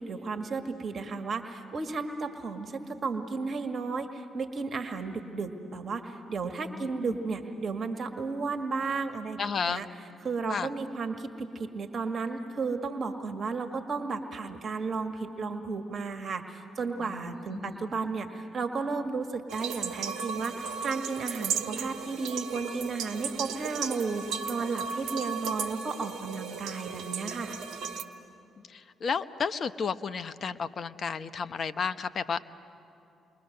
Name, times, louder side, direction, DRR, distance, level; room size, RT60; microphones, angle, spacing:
voice 1, 0.0-9.9 10.2-27.5, right 4 dB, 50° right, 6 dB, 1.6 m, -33 dB
voice 2, 6.6-7.2 9.4-9.8 10.5-10.7 17.0-17.8 28.6-32.4, left 6 dB, 50° left, 12 dB, 0.9 m, -33 dB
sound 1, 19.5-28.0, right 6 dB, 75° right, 1.3 m, -35 dB
29.0 x 22.0 x 6.7 m, 2.7 s
hypercardioid pair, 45°, 0 cm